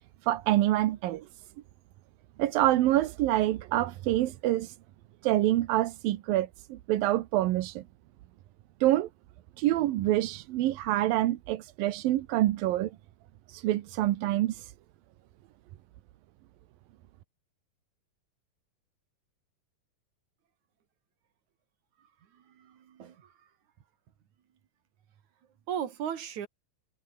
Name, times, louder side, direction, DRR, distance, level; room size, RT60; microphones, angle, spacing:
voice 1, 0.2-1.3 2.4-4.8 5.2-7.8 8.8-9.1 9.6-12.9 13.5-14.7, right 14 dB, 75° right, 2.8 m, -26 dB
voice 2, 22.3-23.5 25.7-26.5, right 9 dB, 55° right, 3.1 m, -37 dB
omnidirectional pair, 4.2 m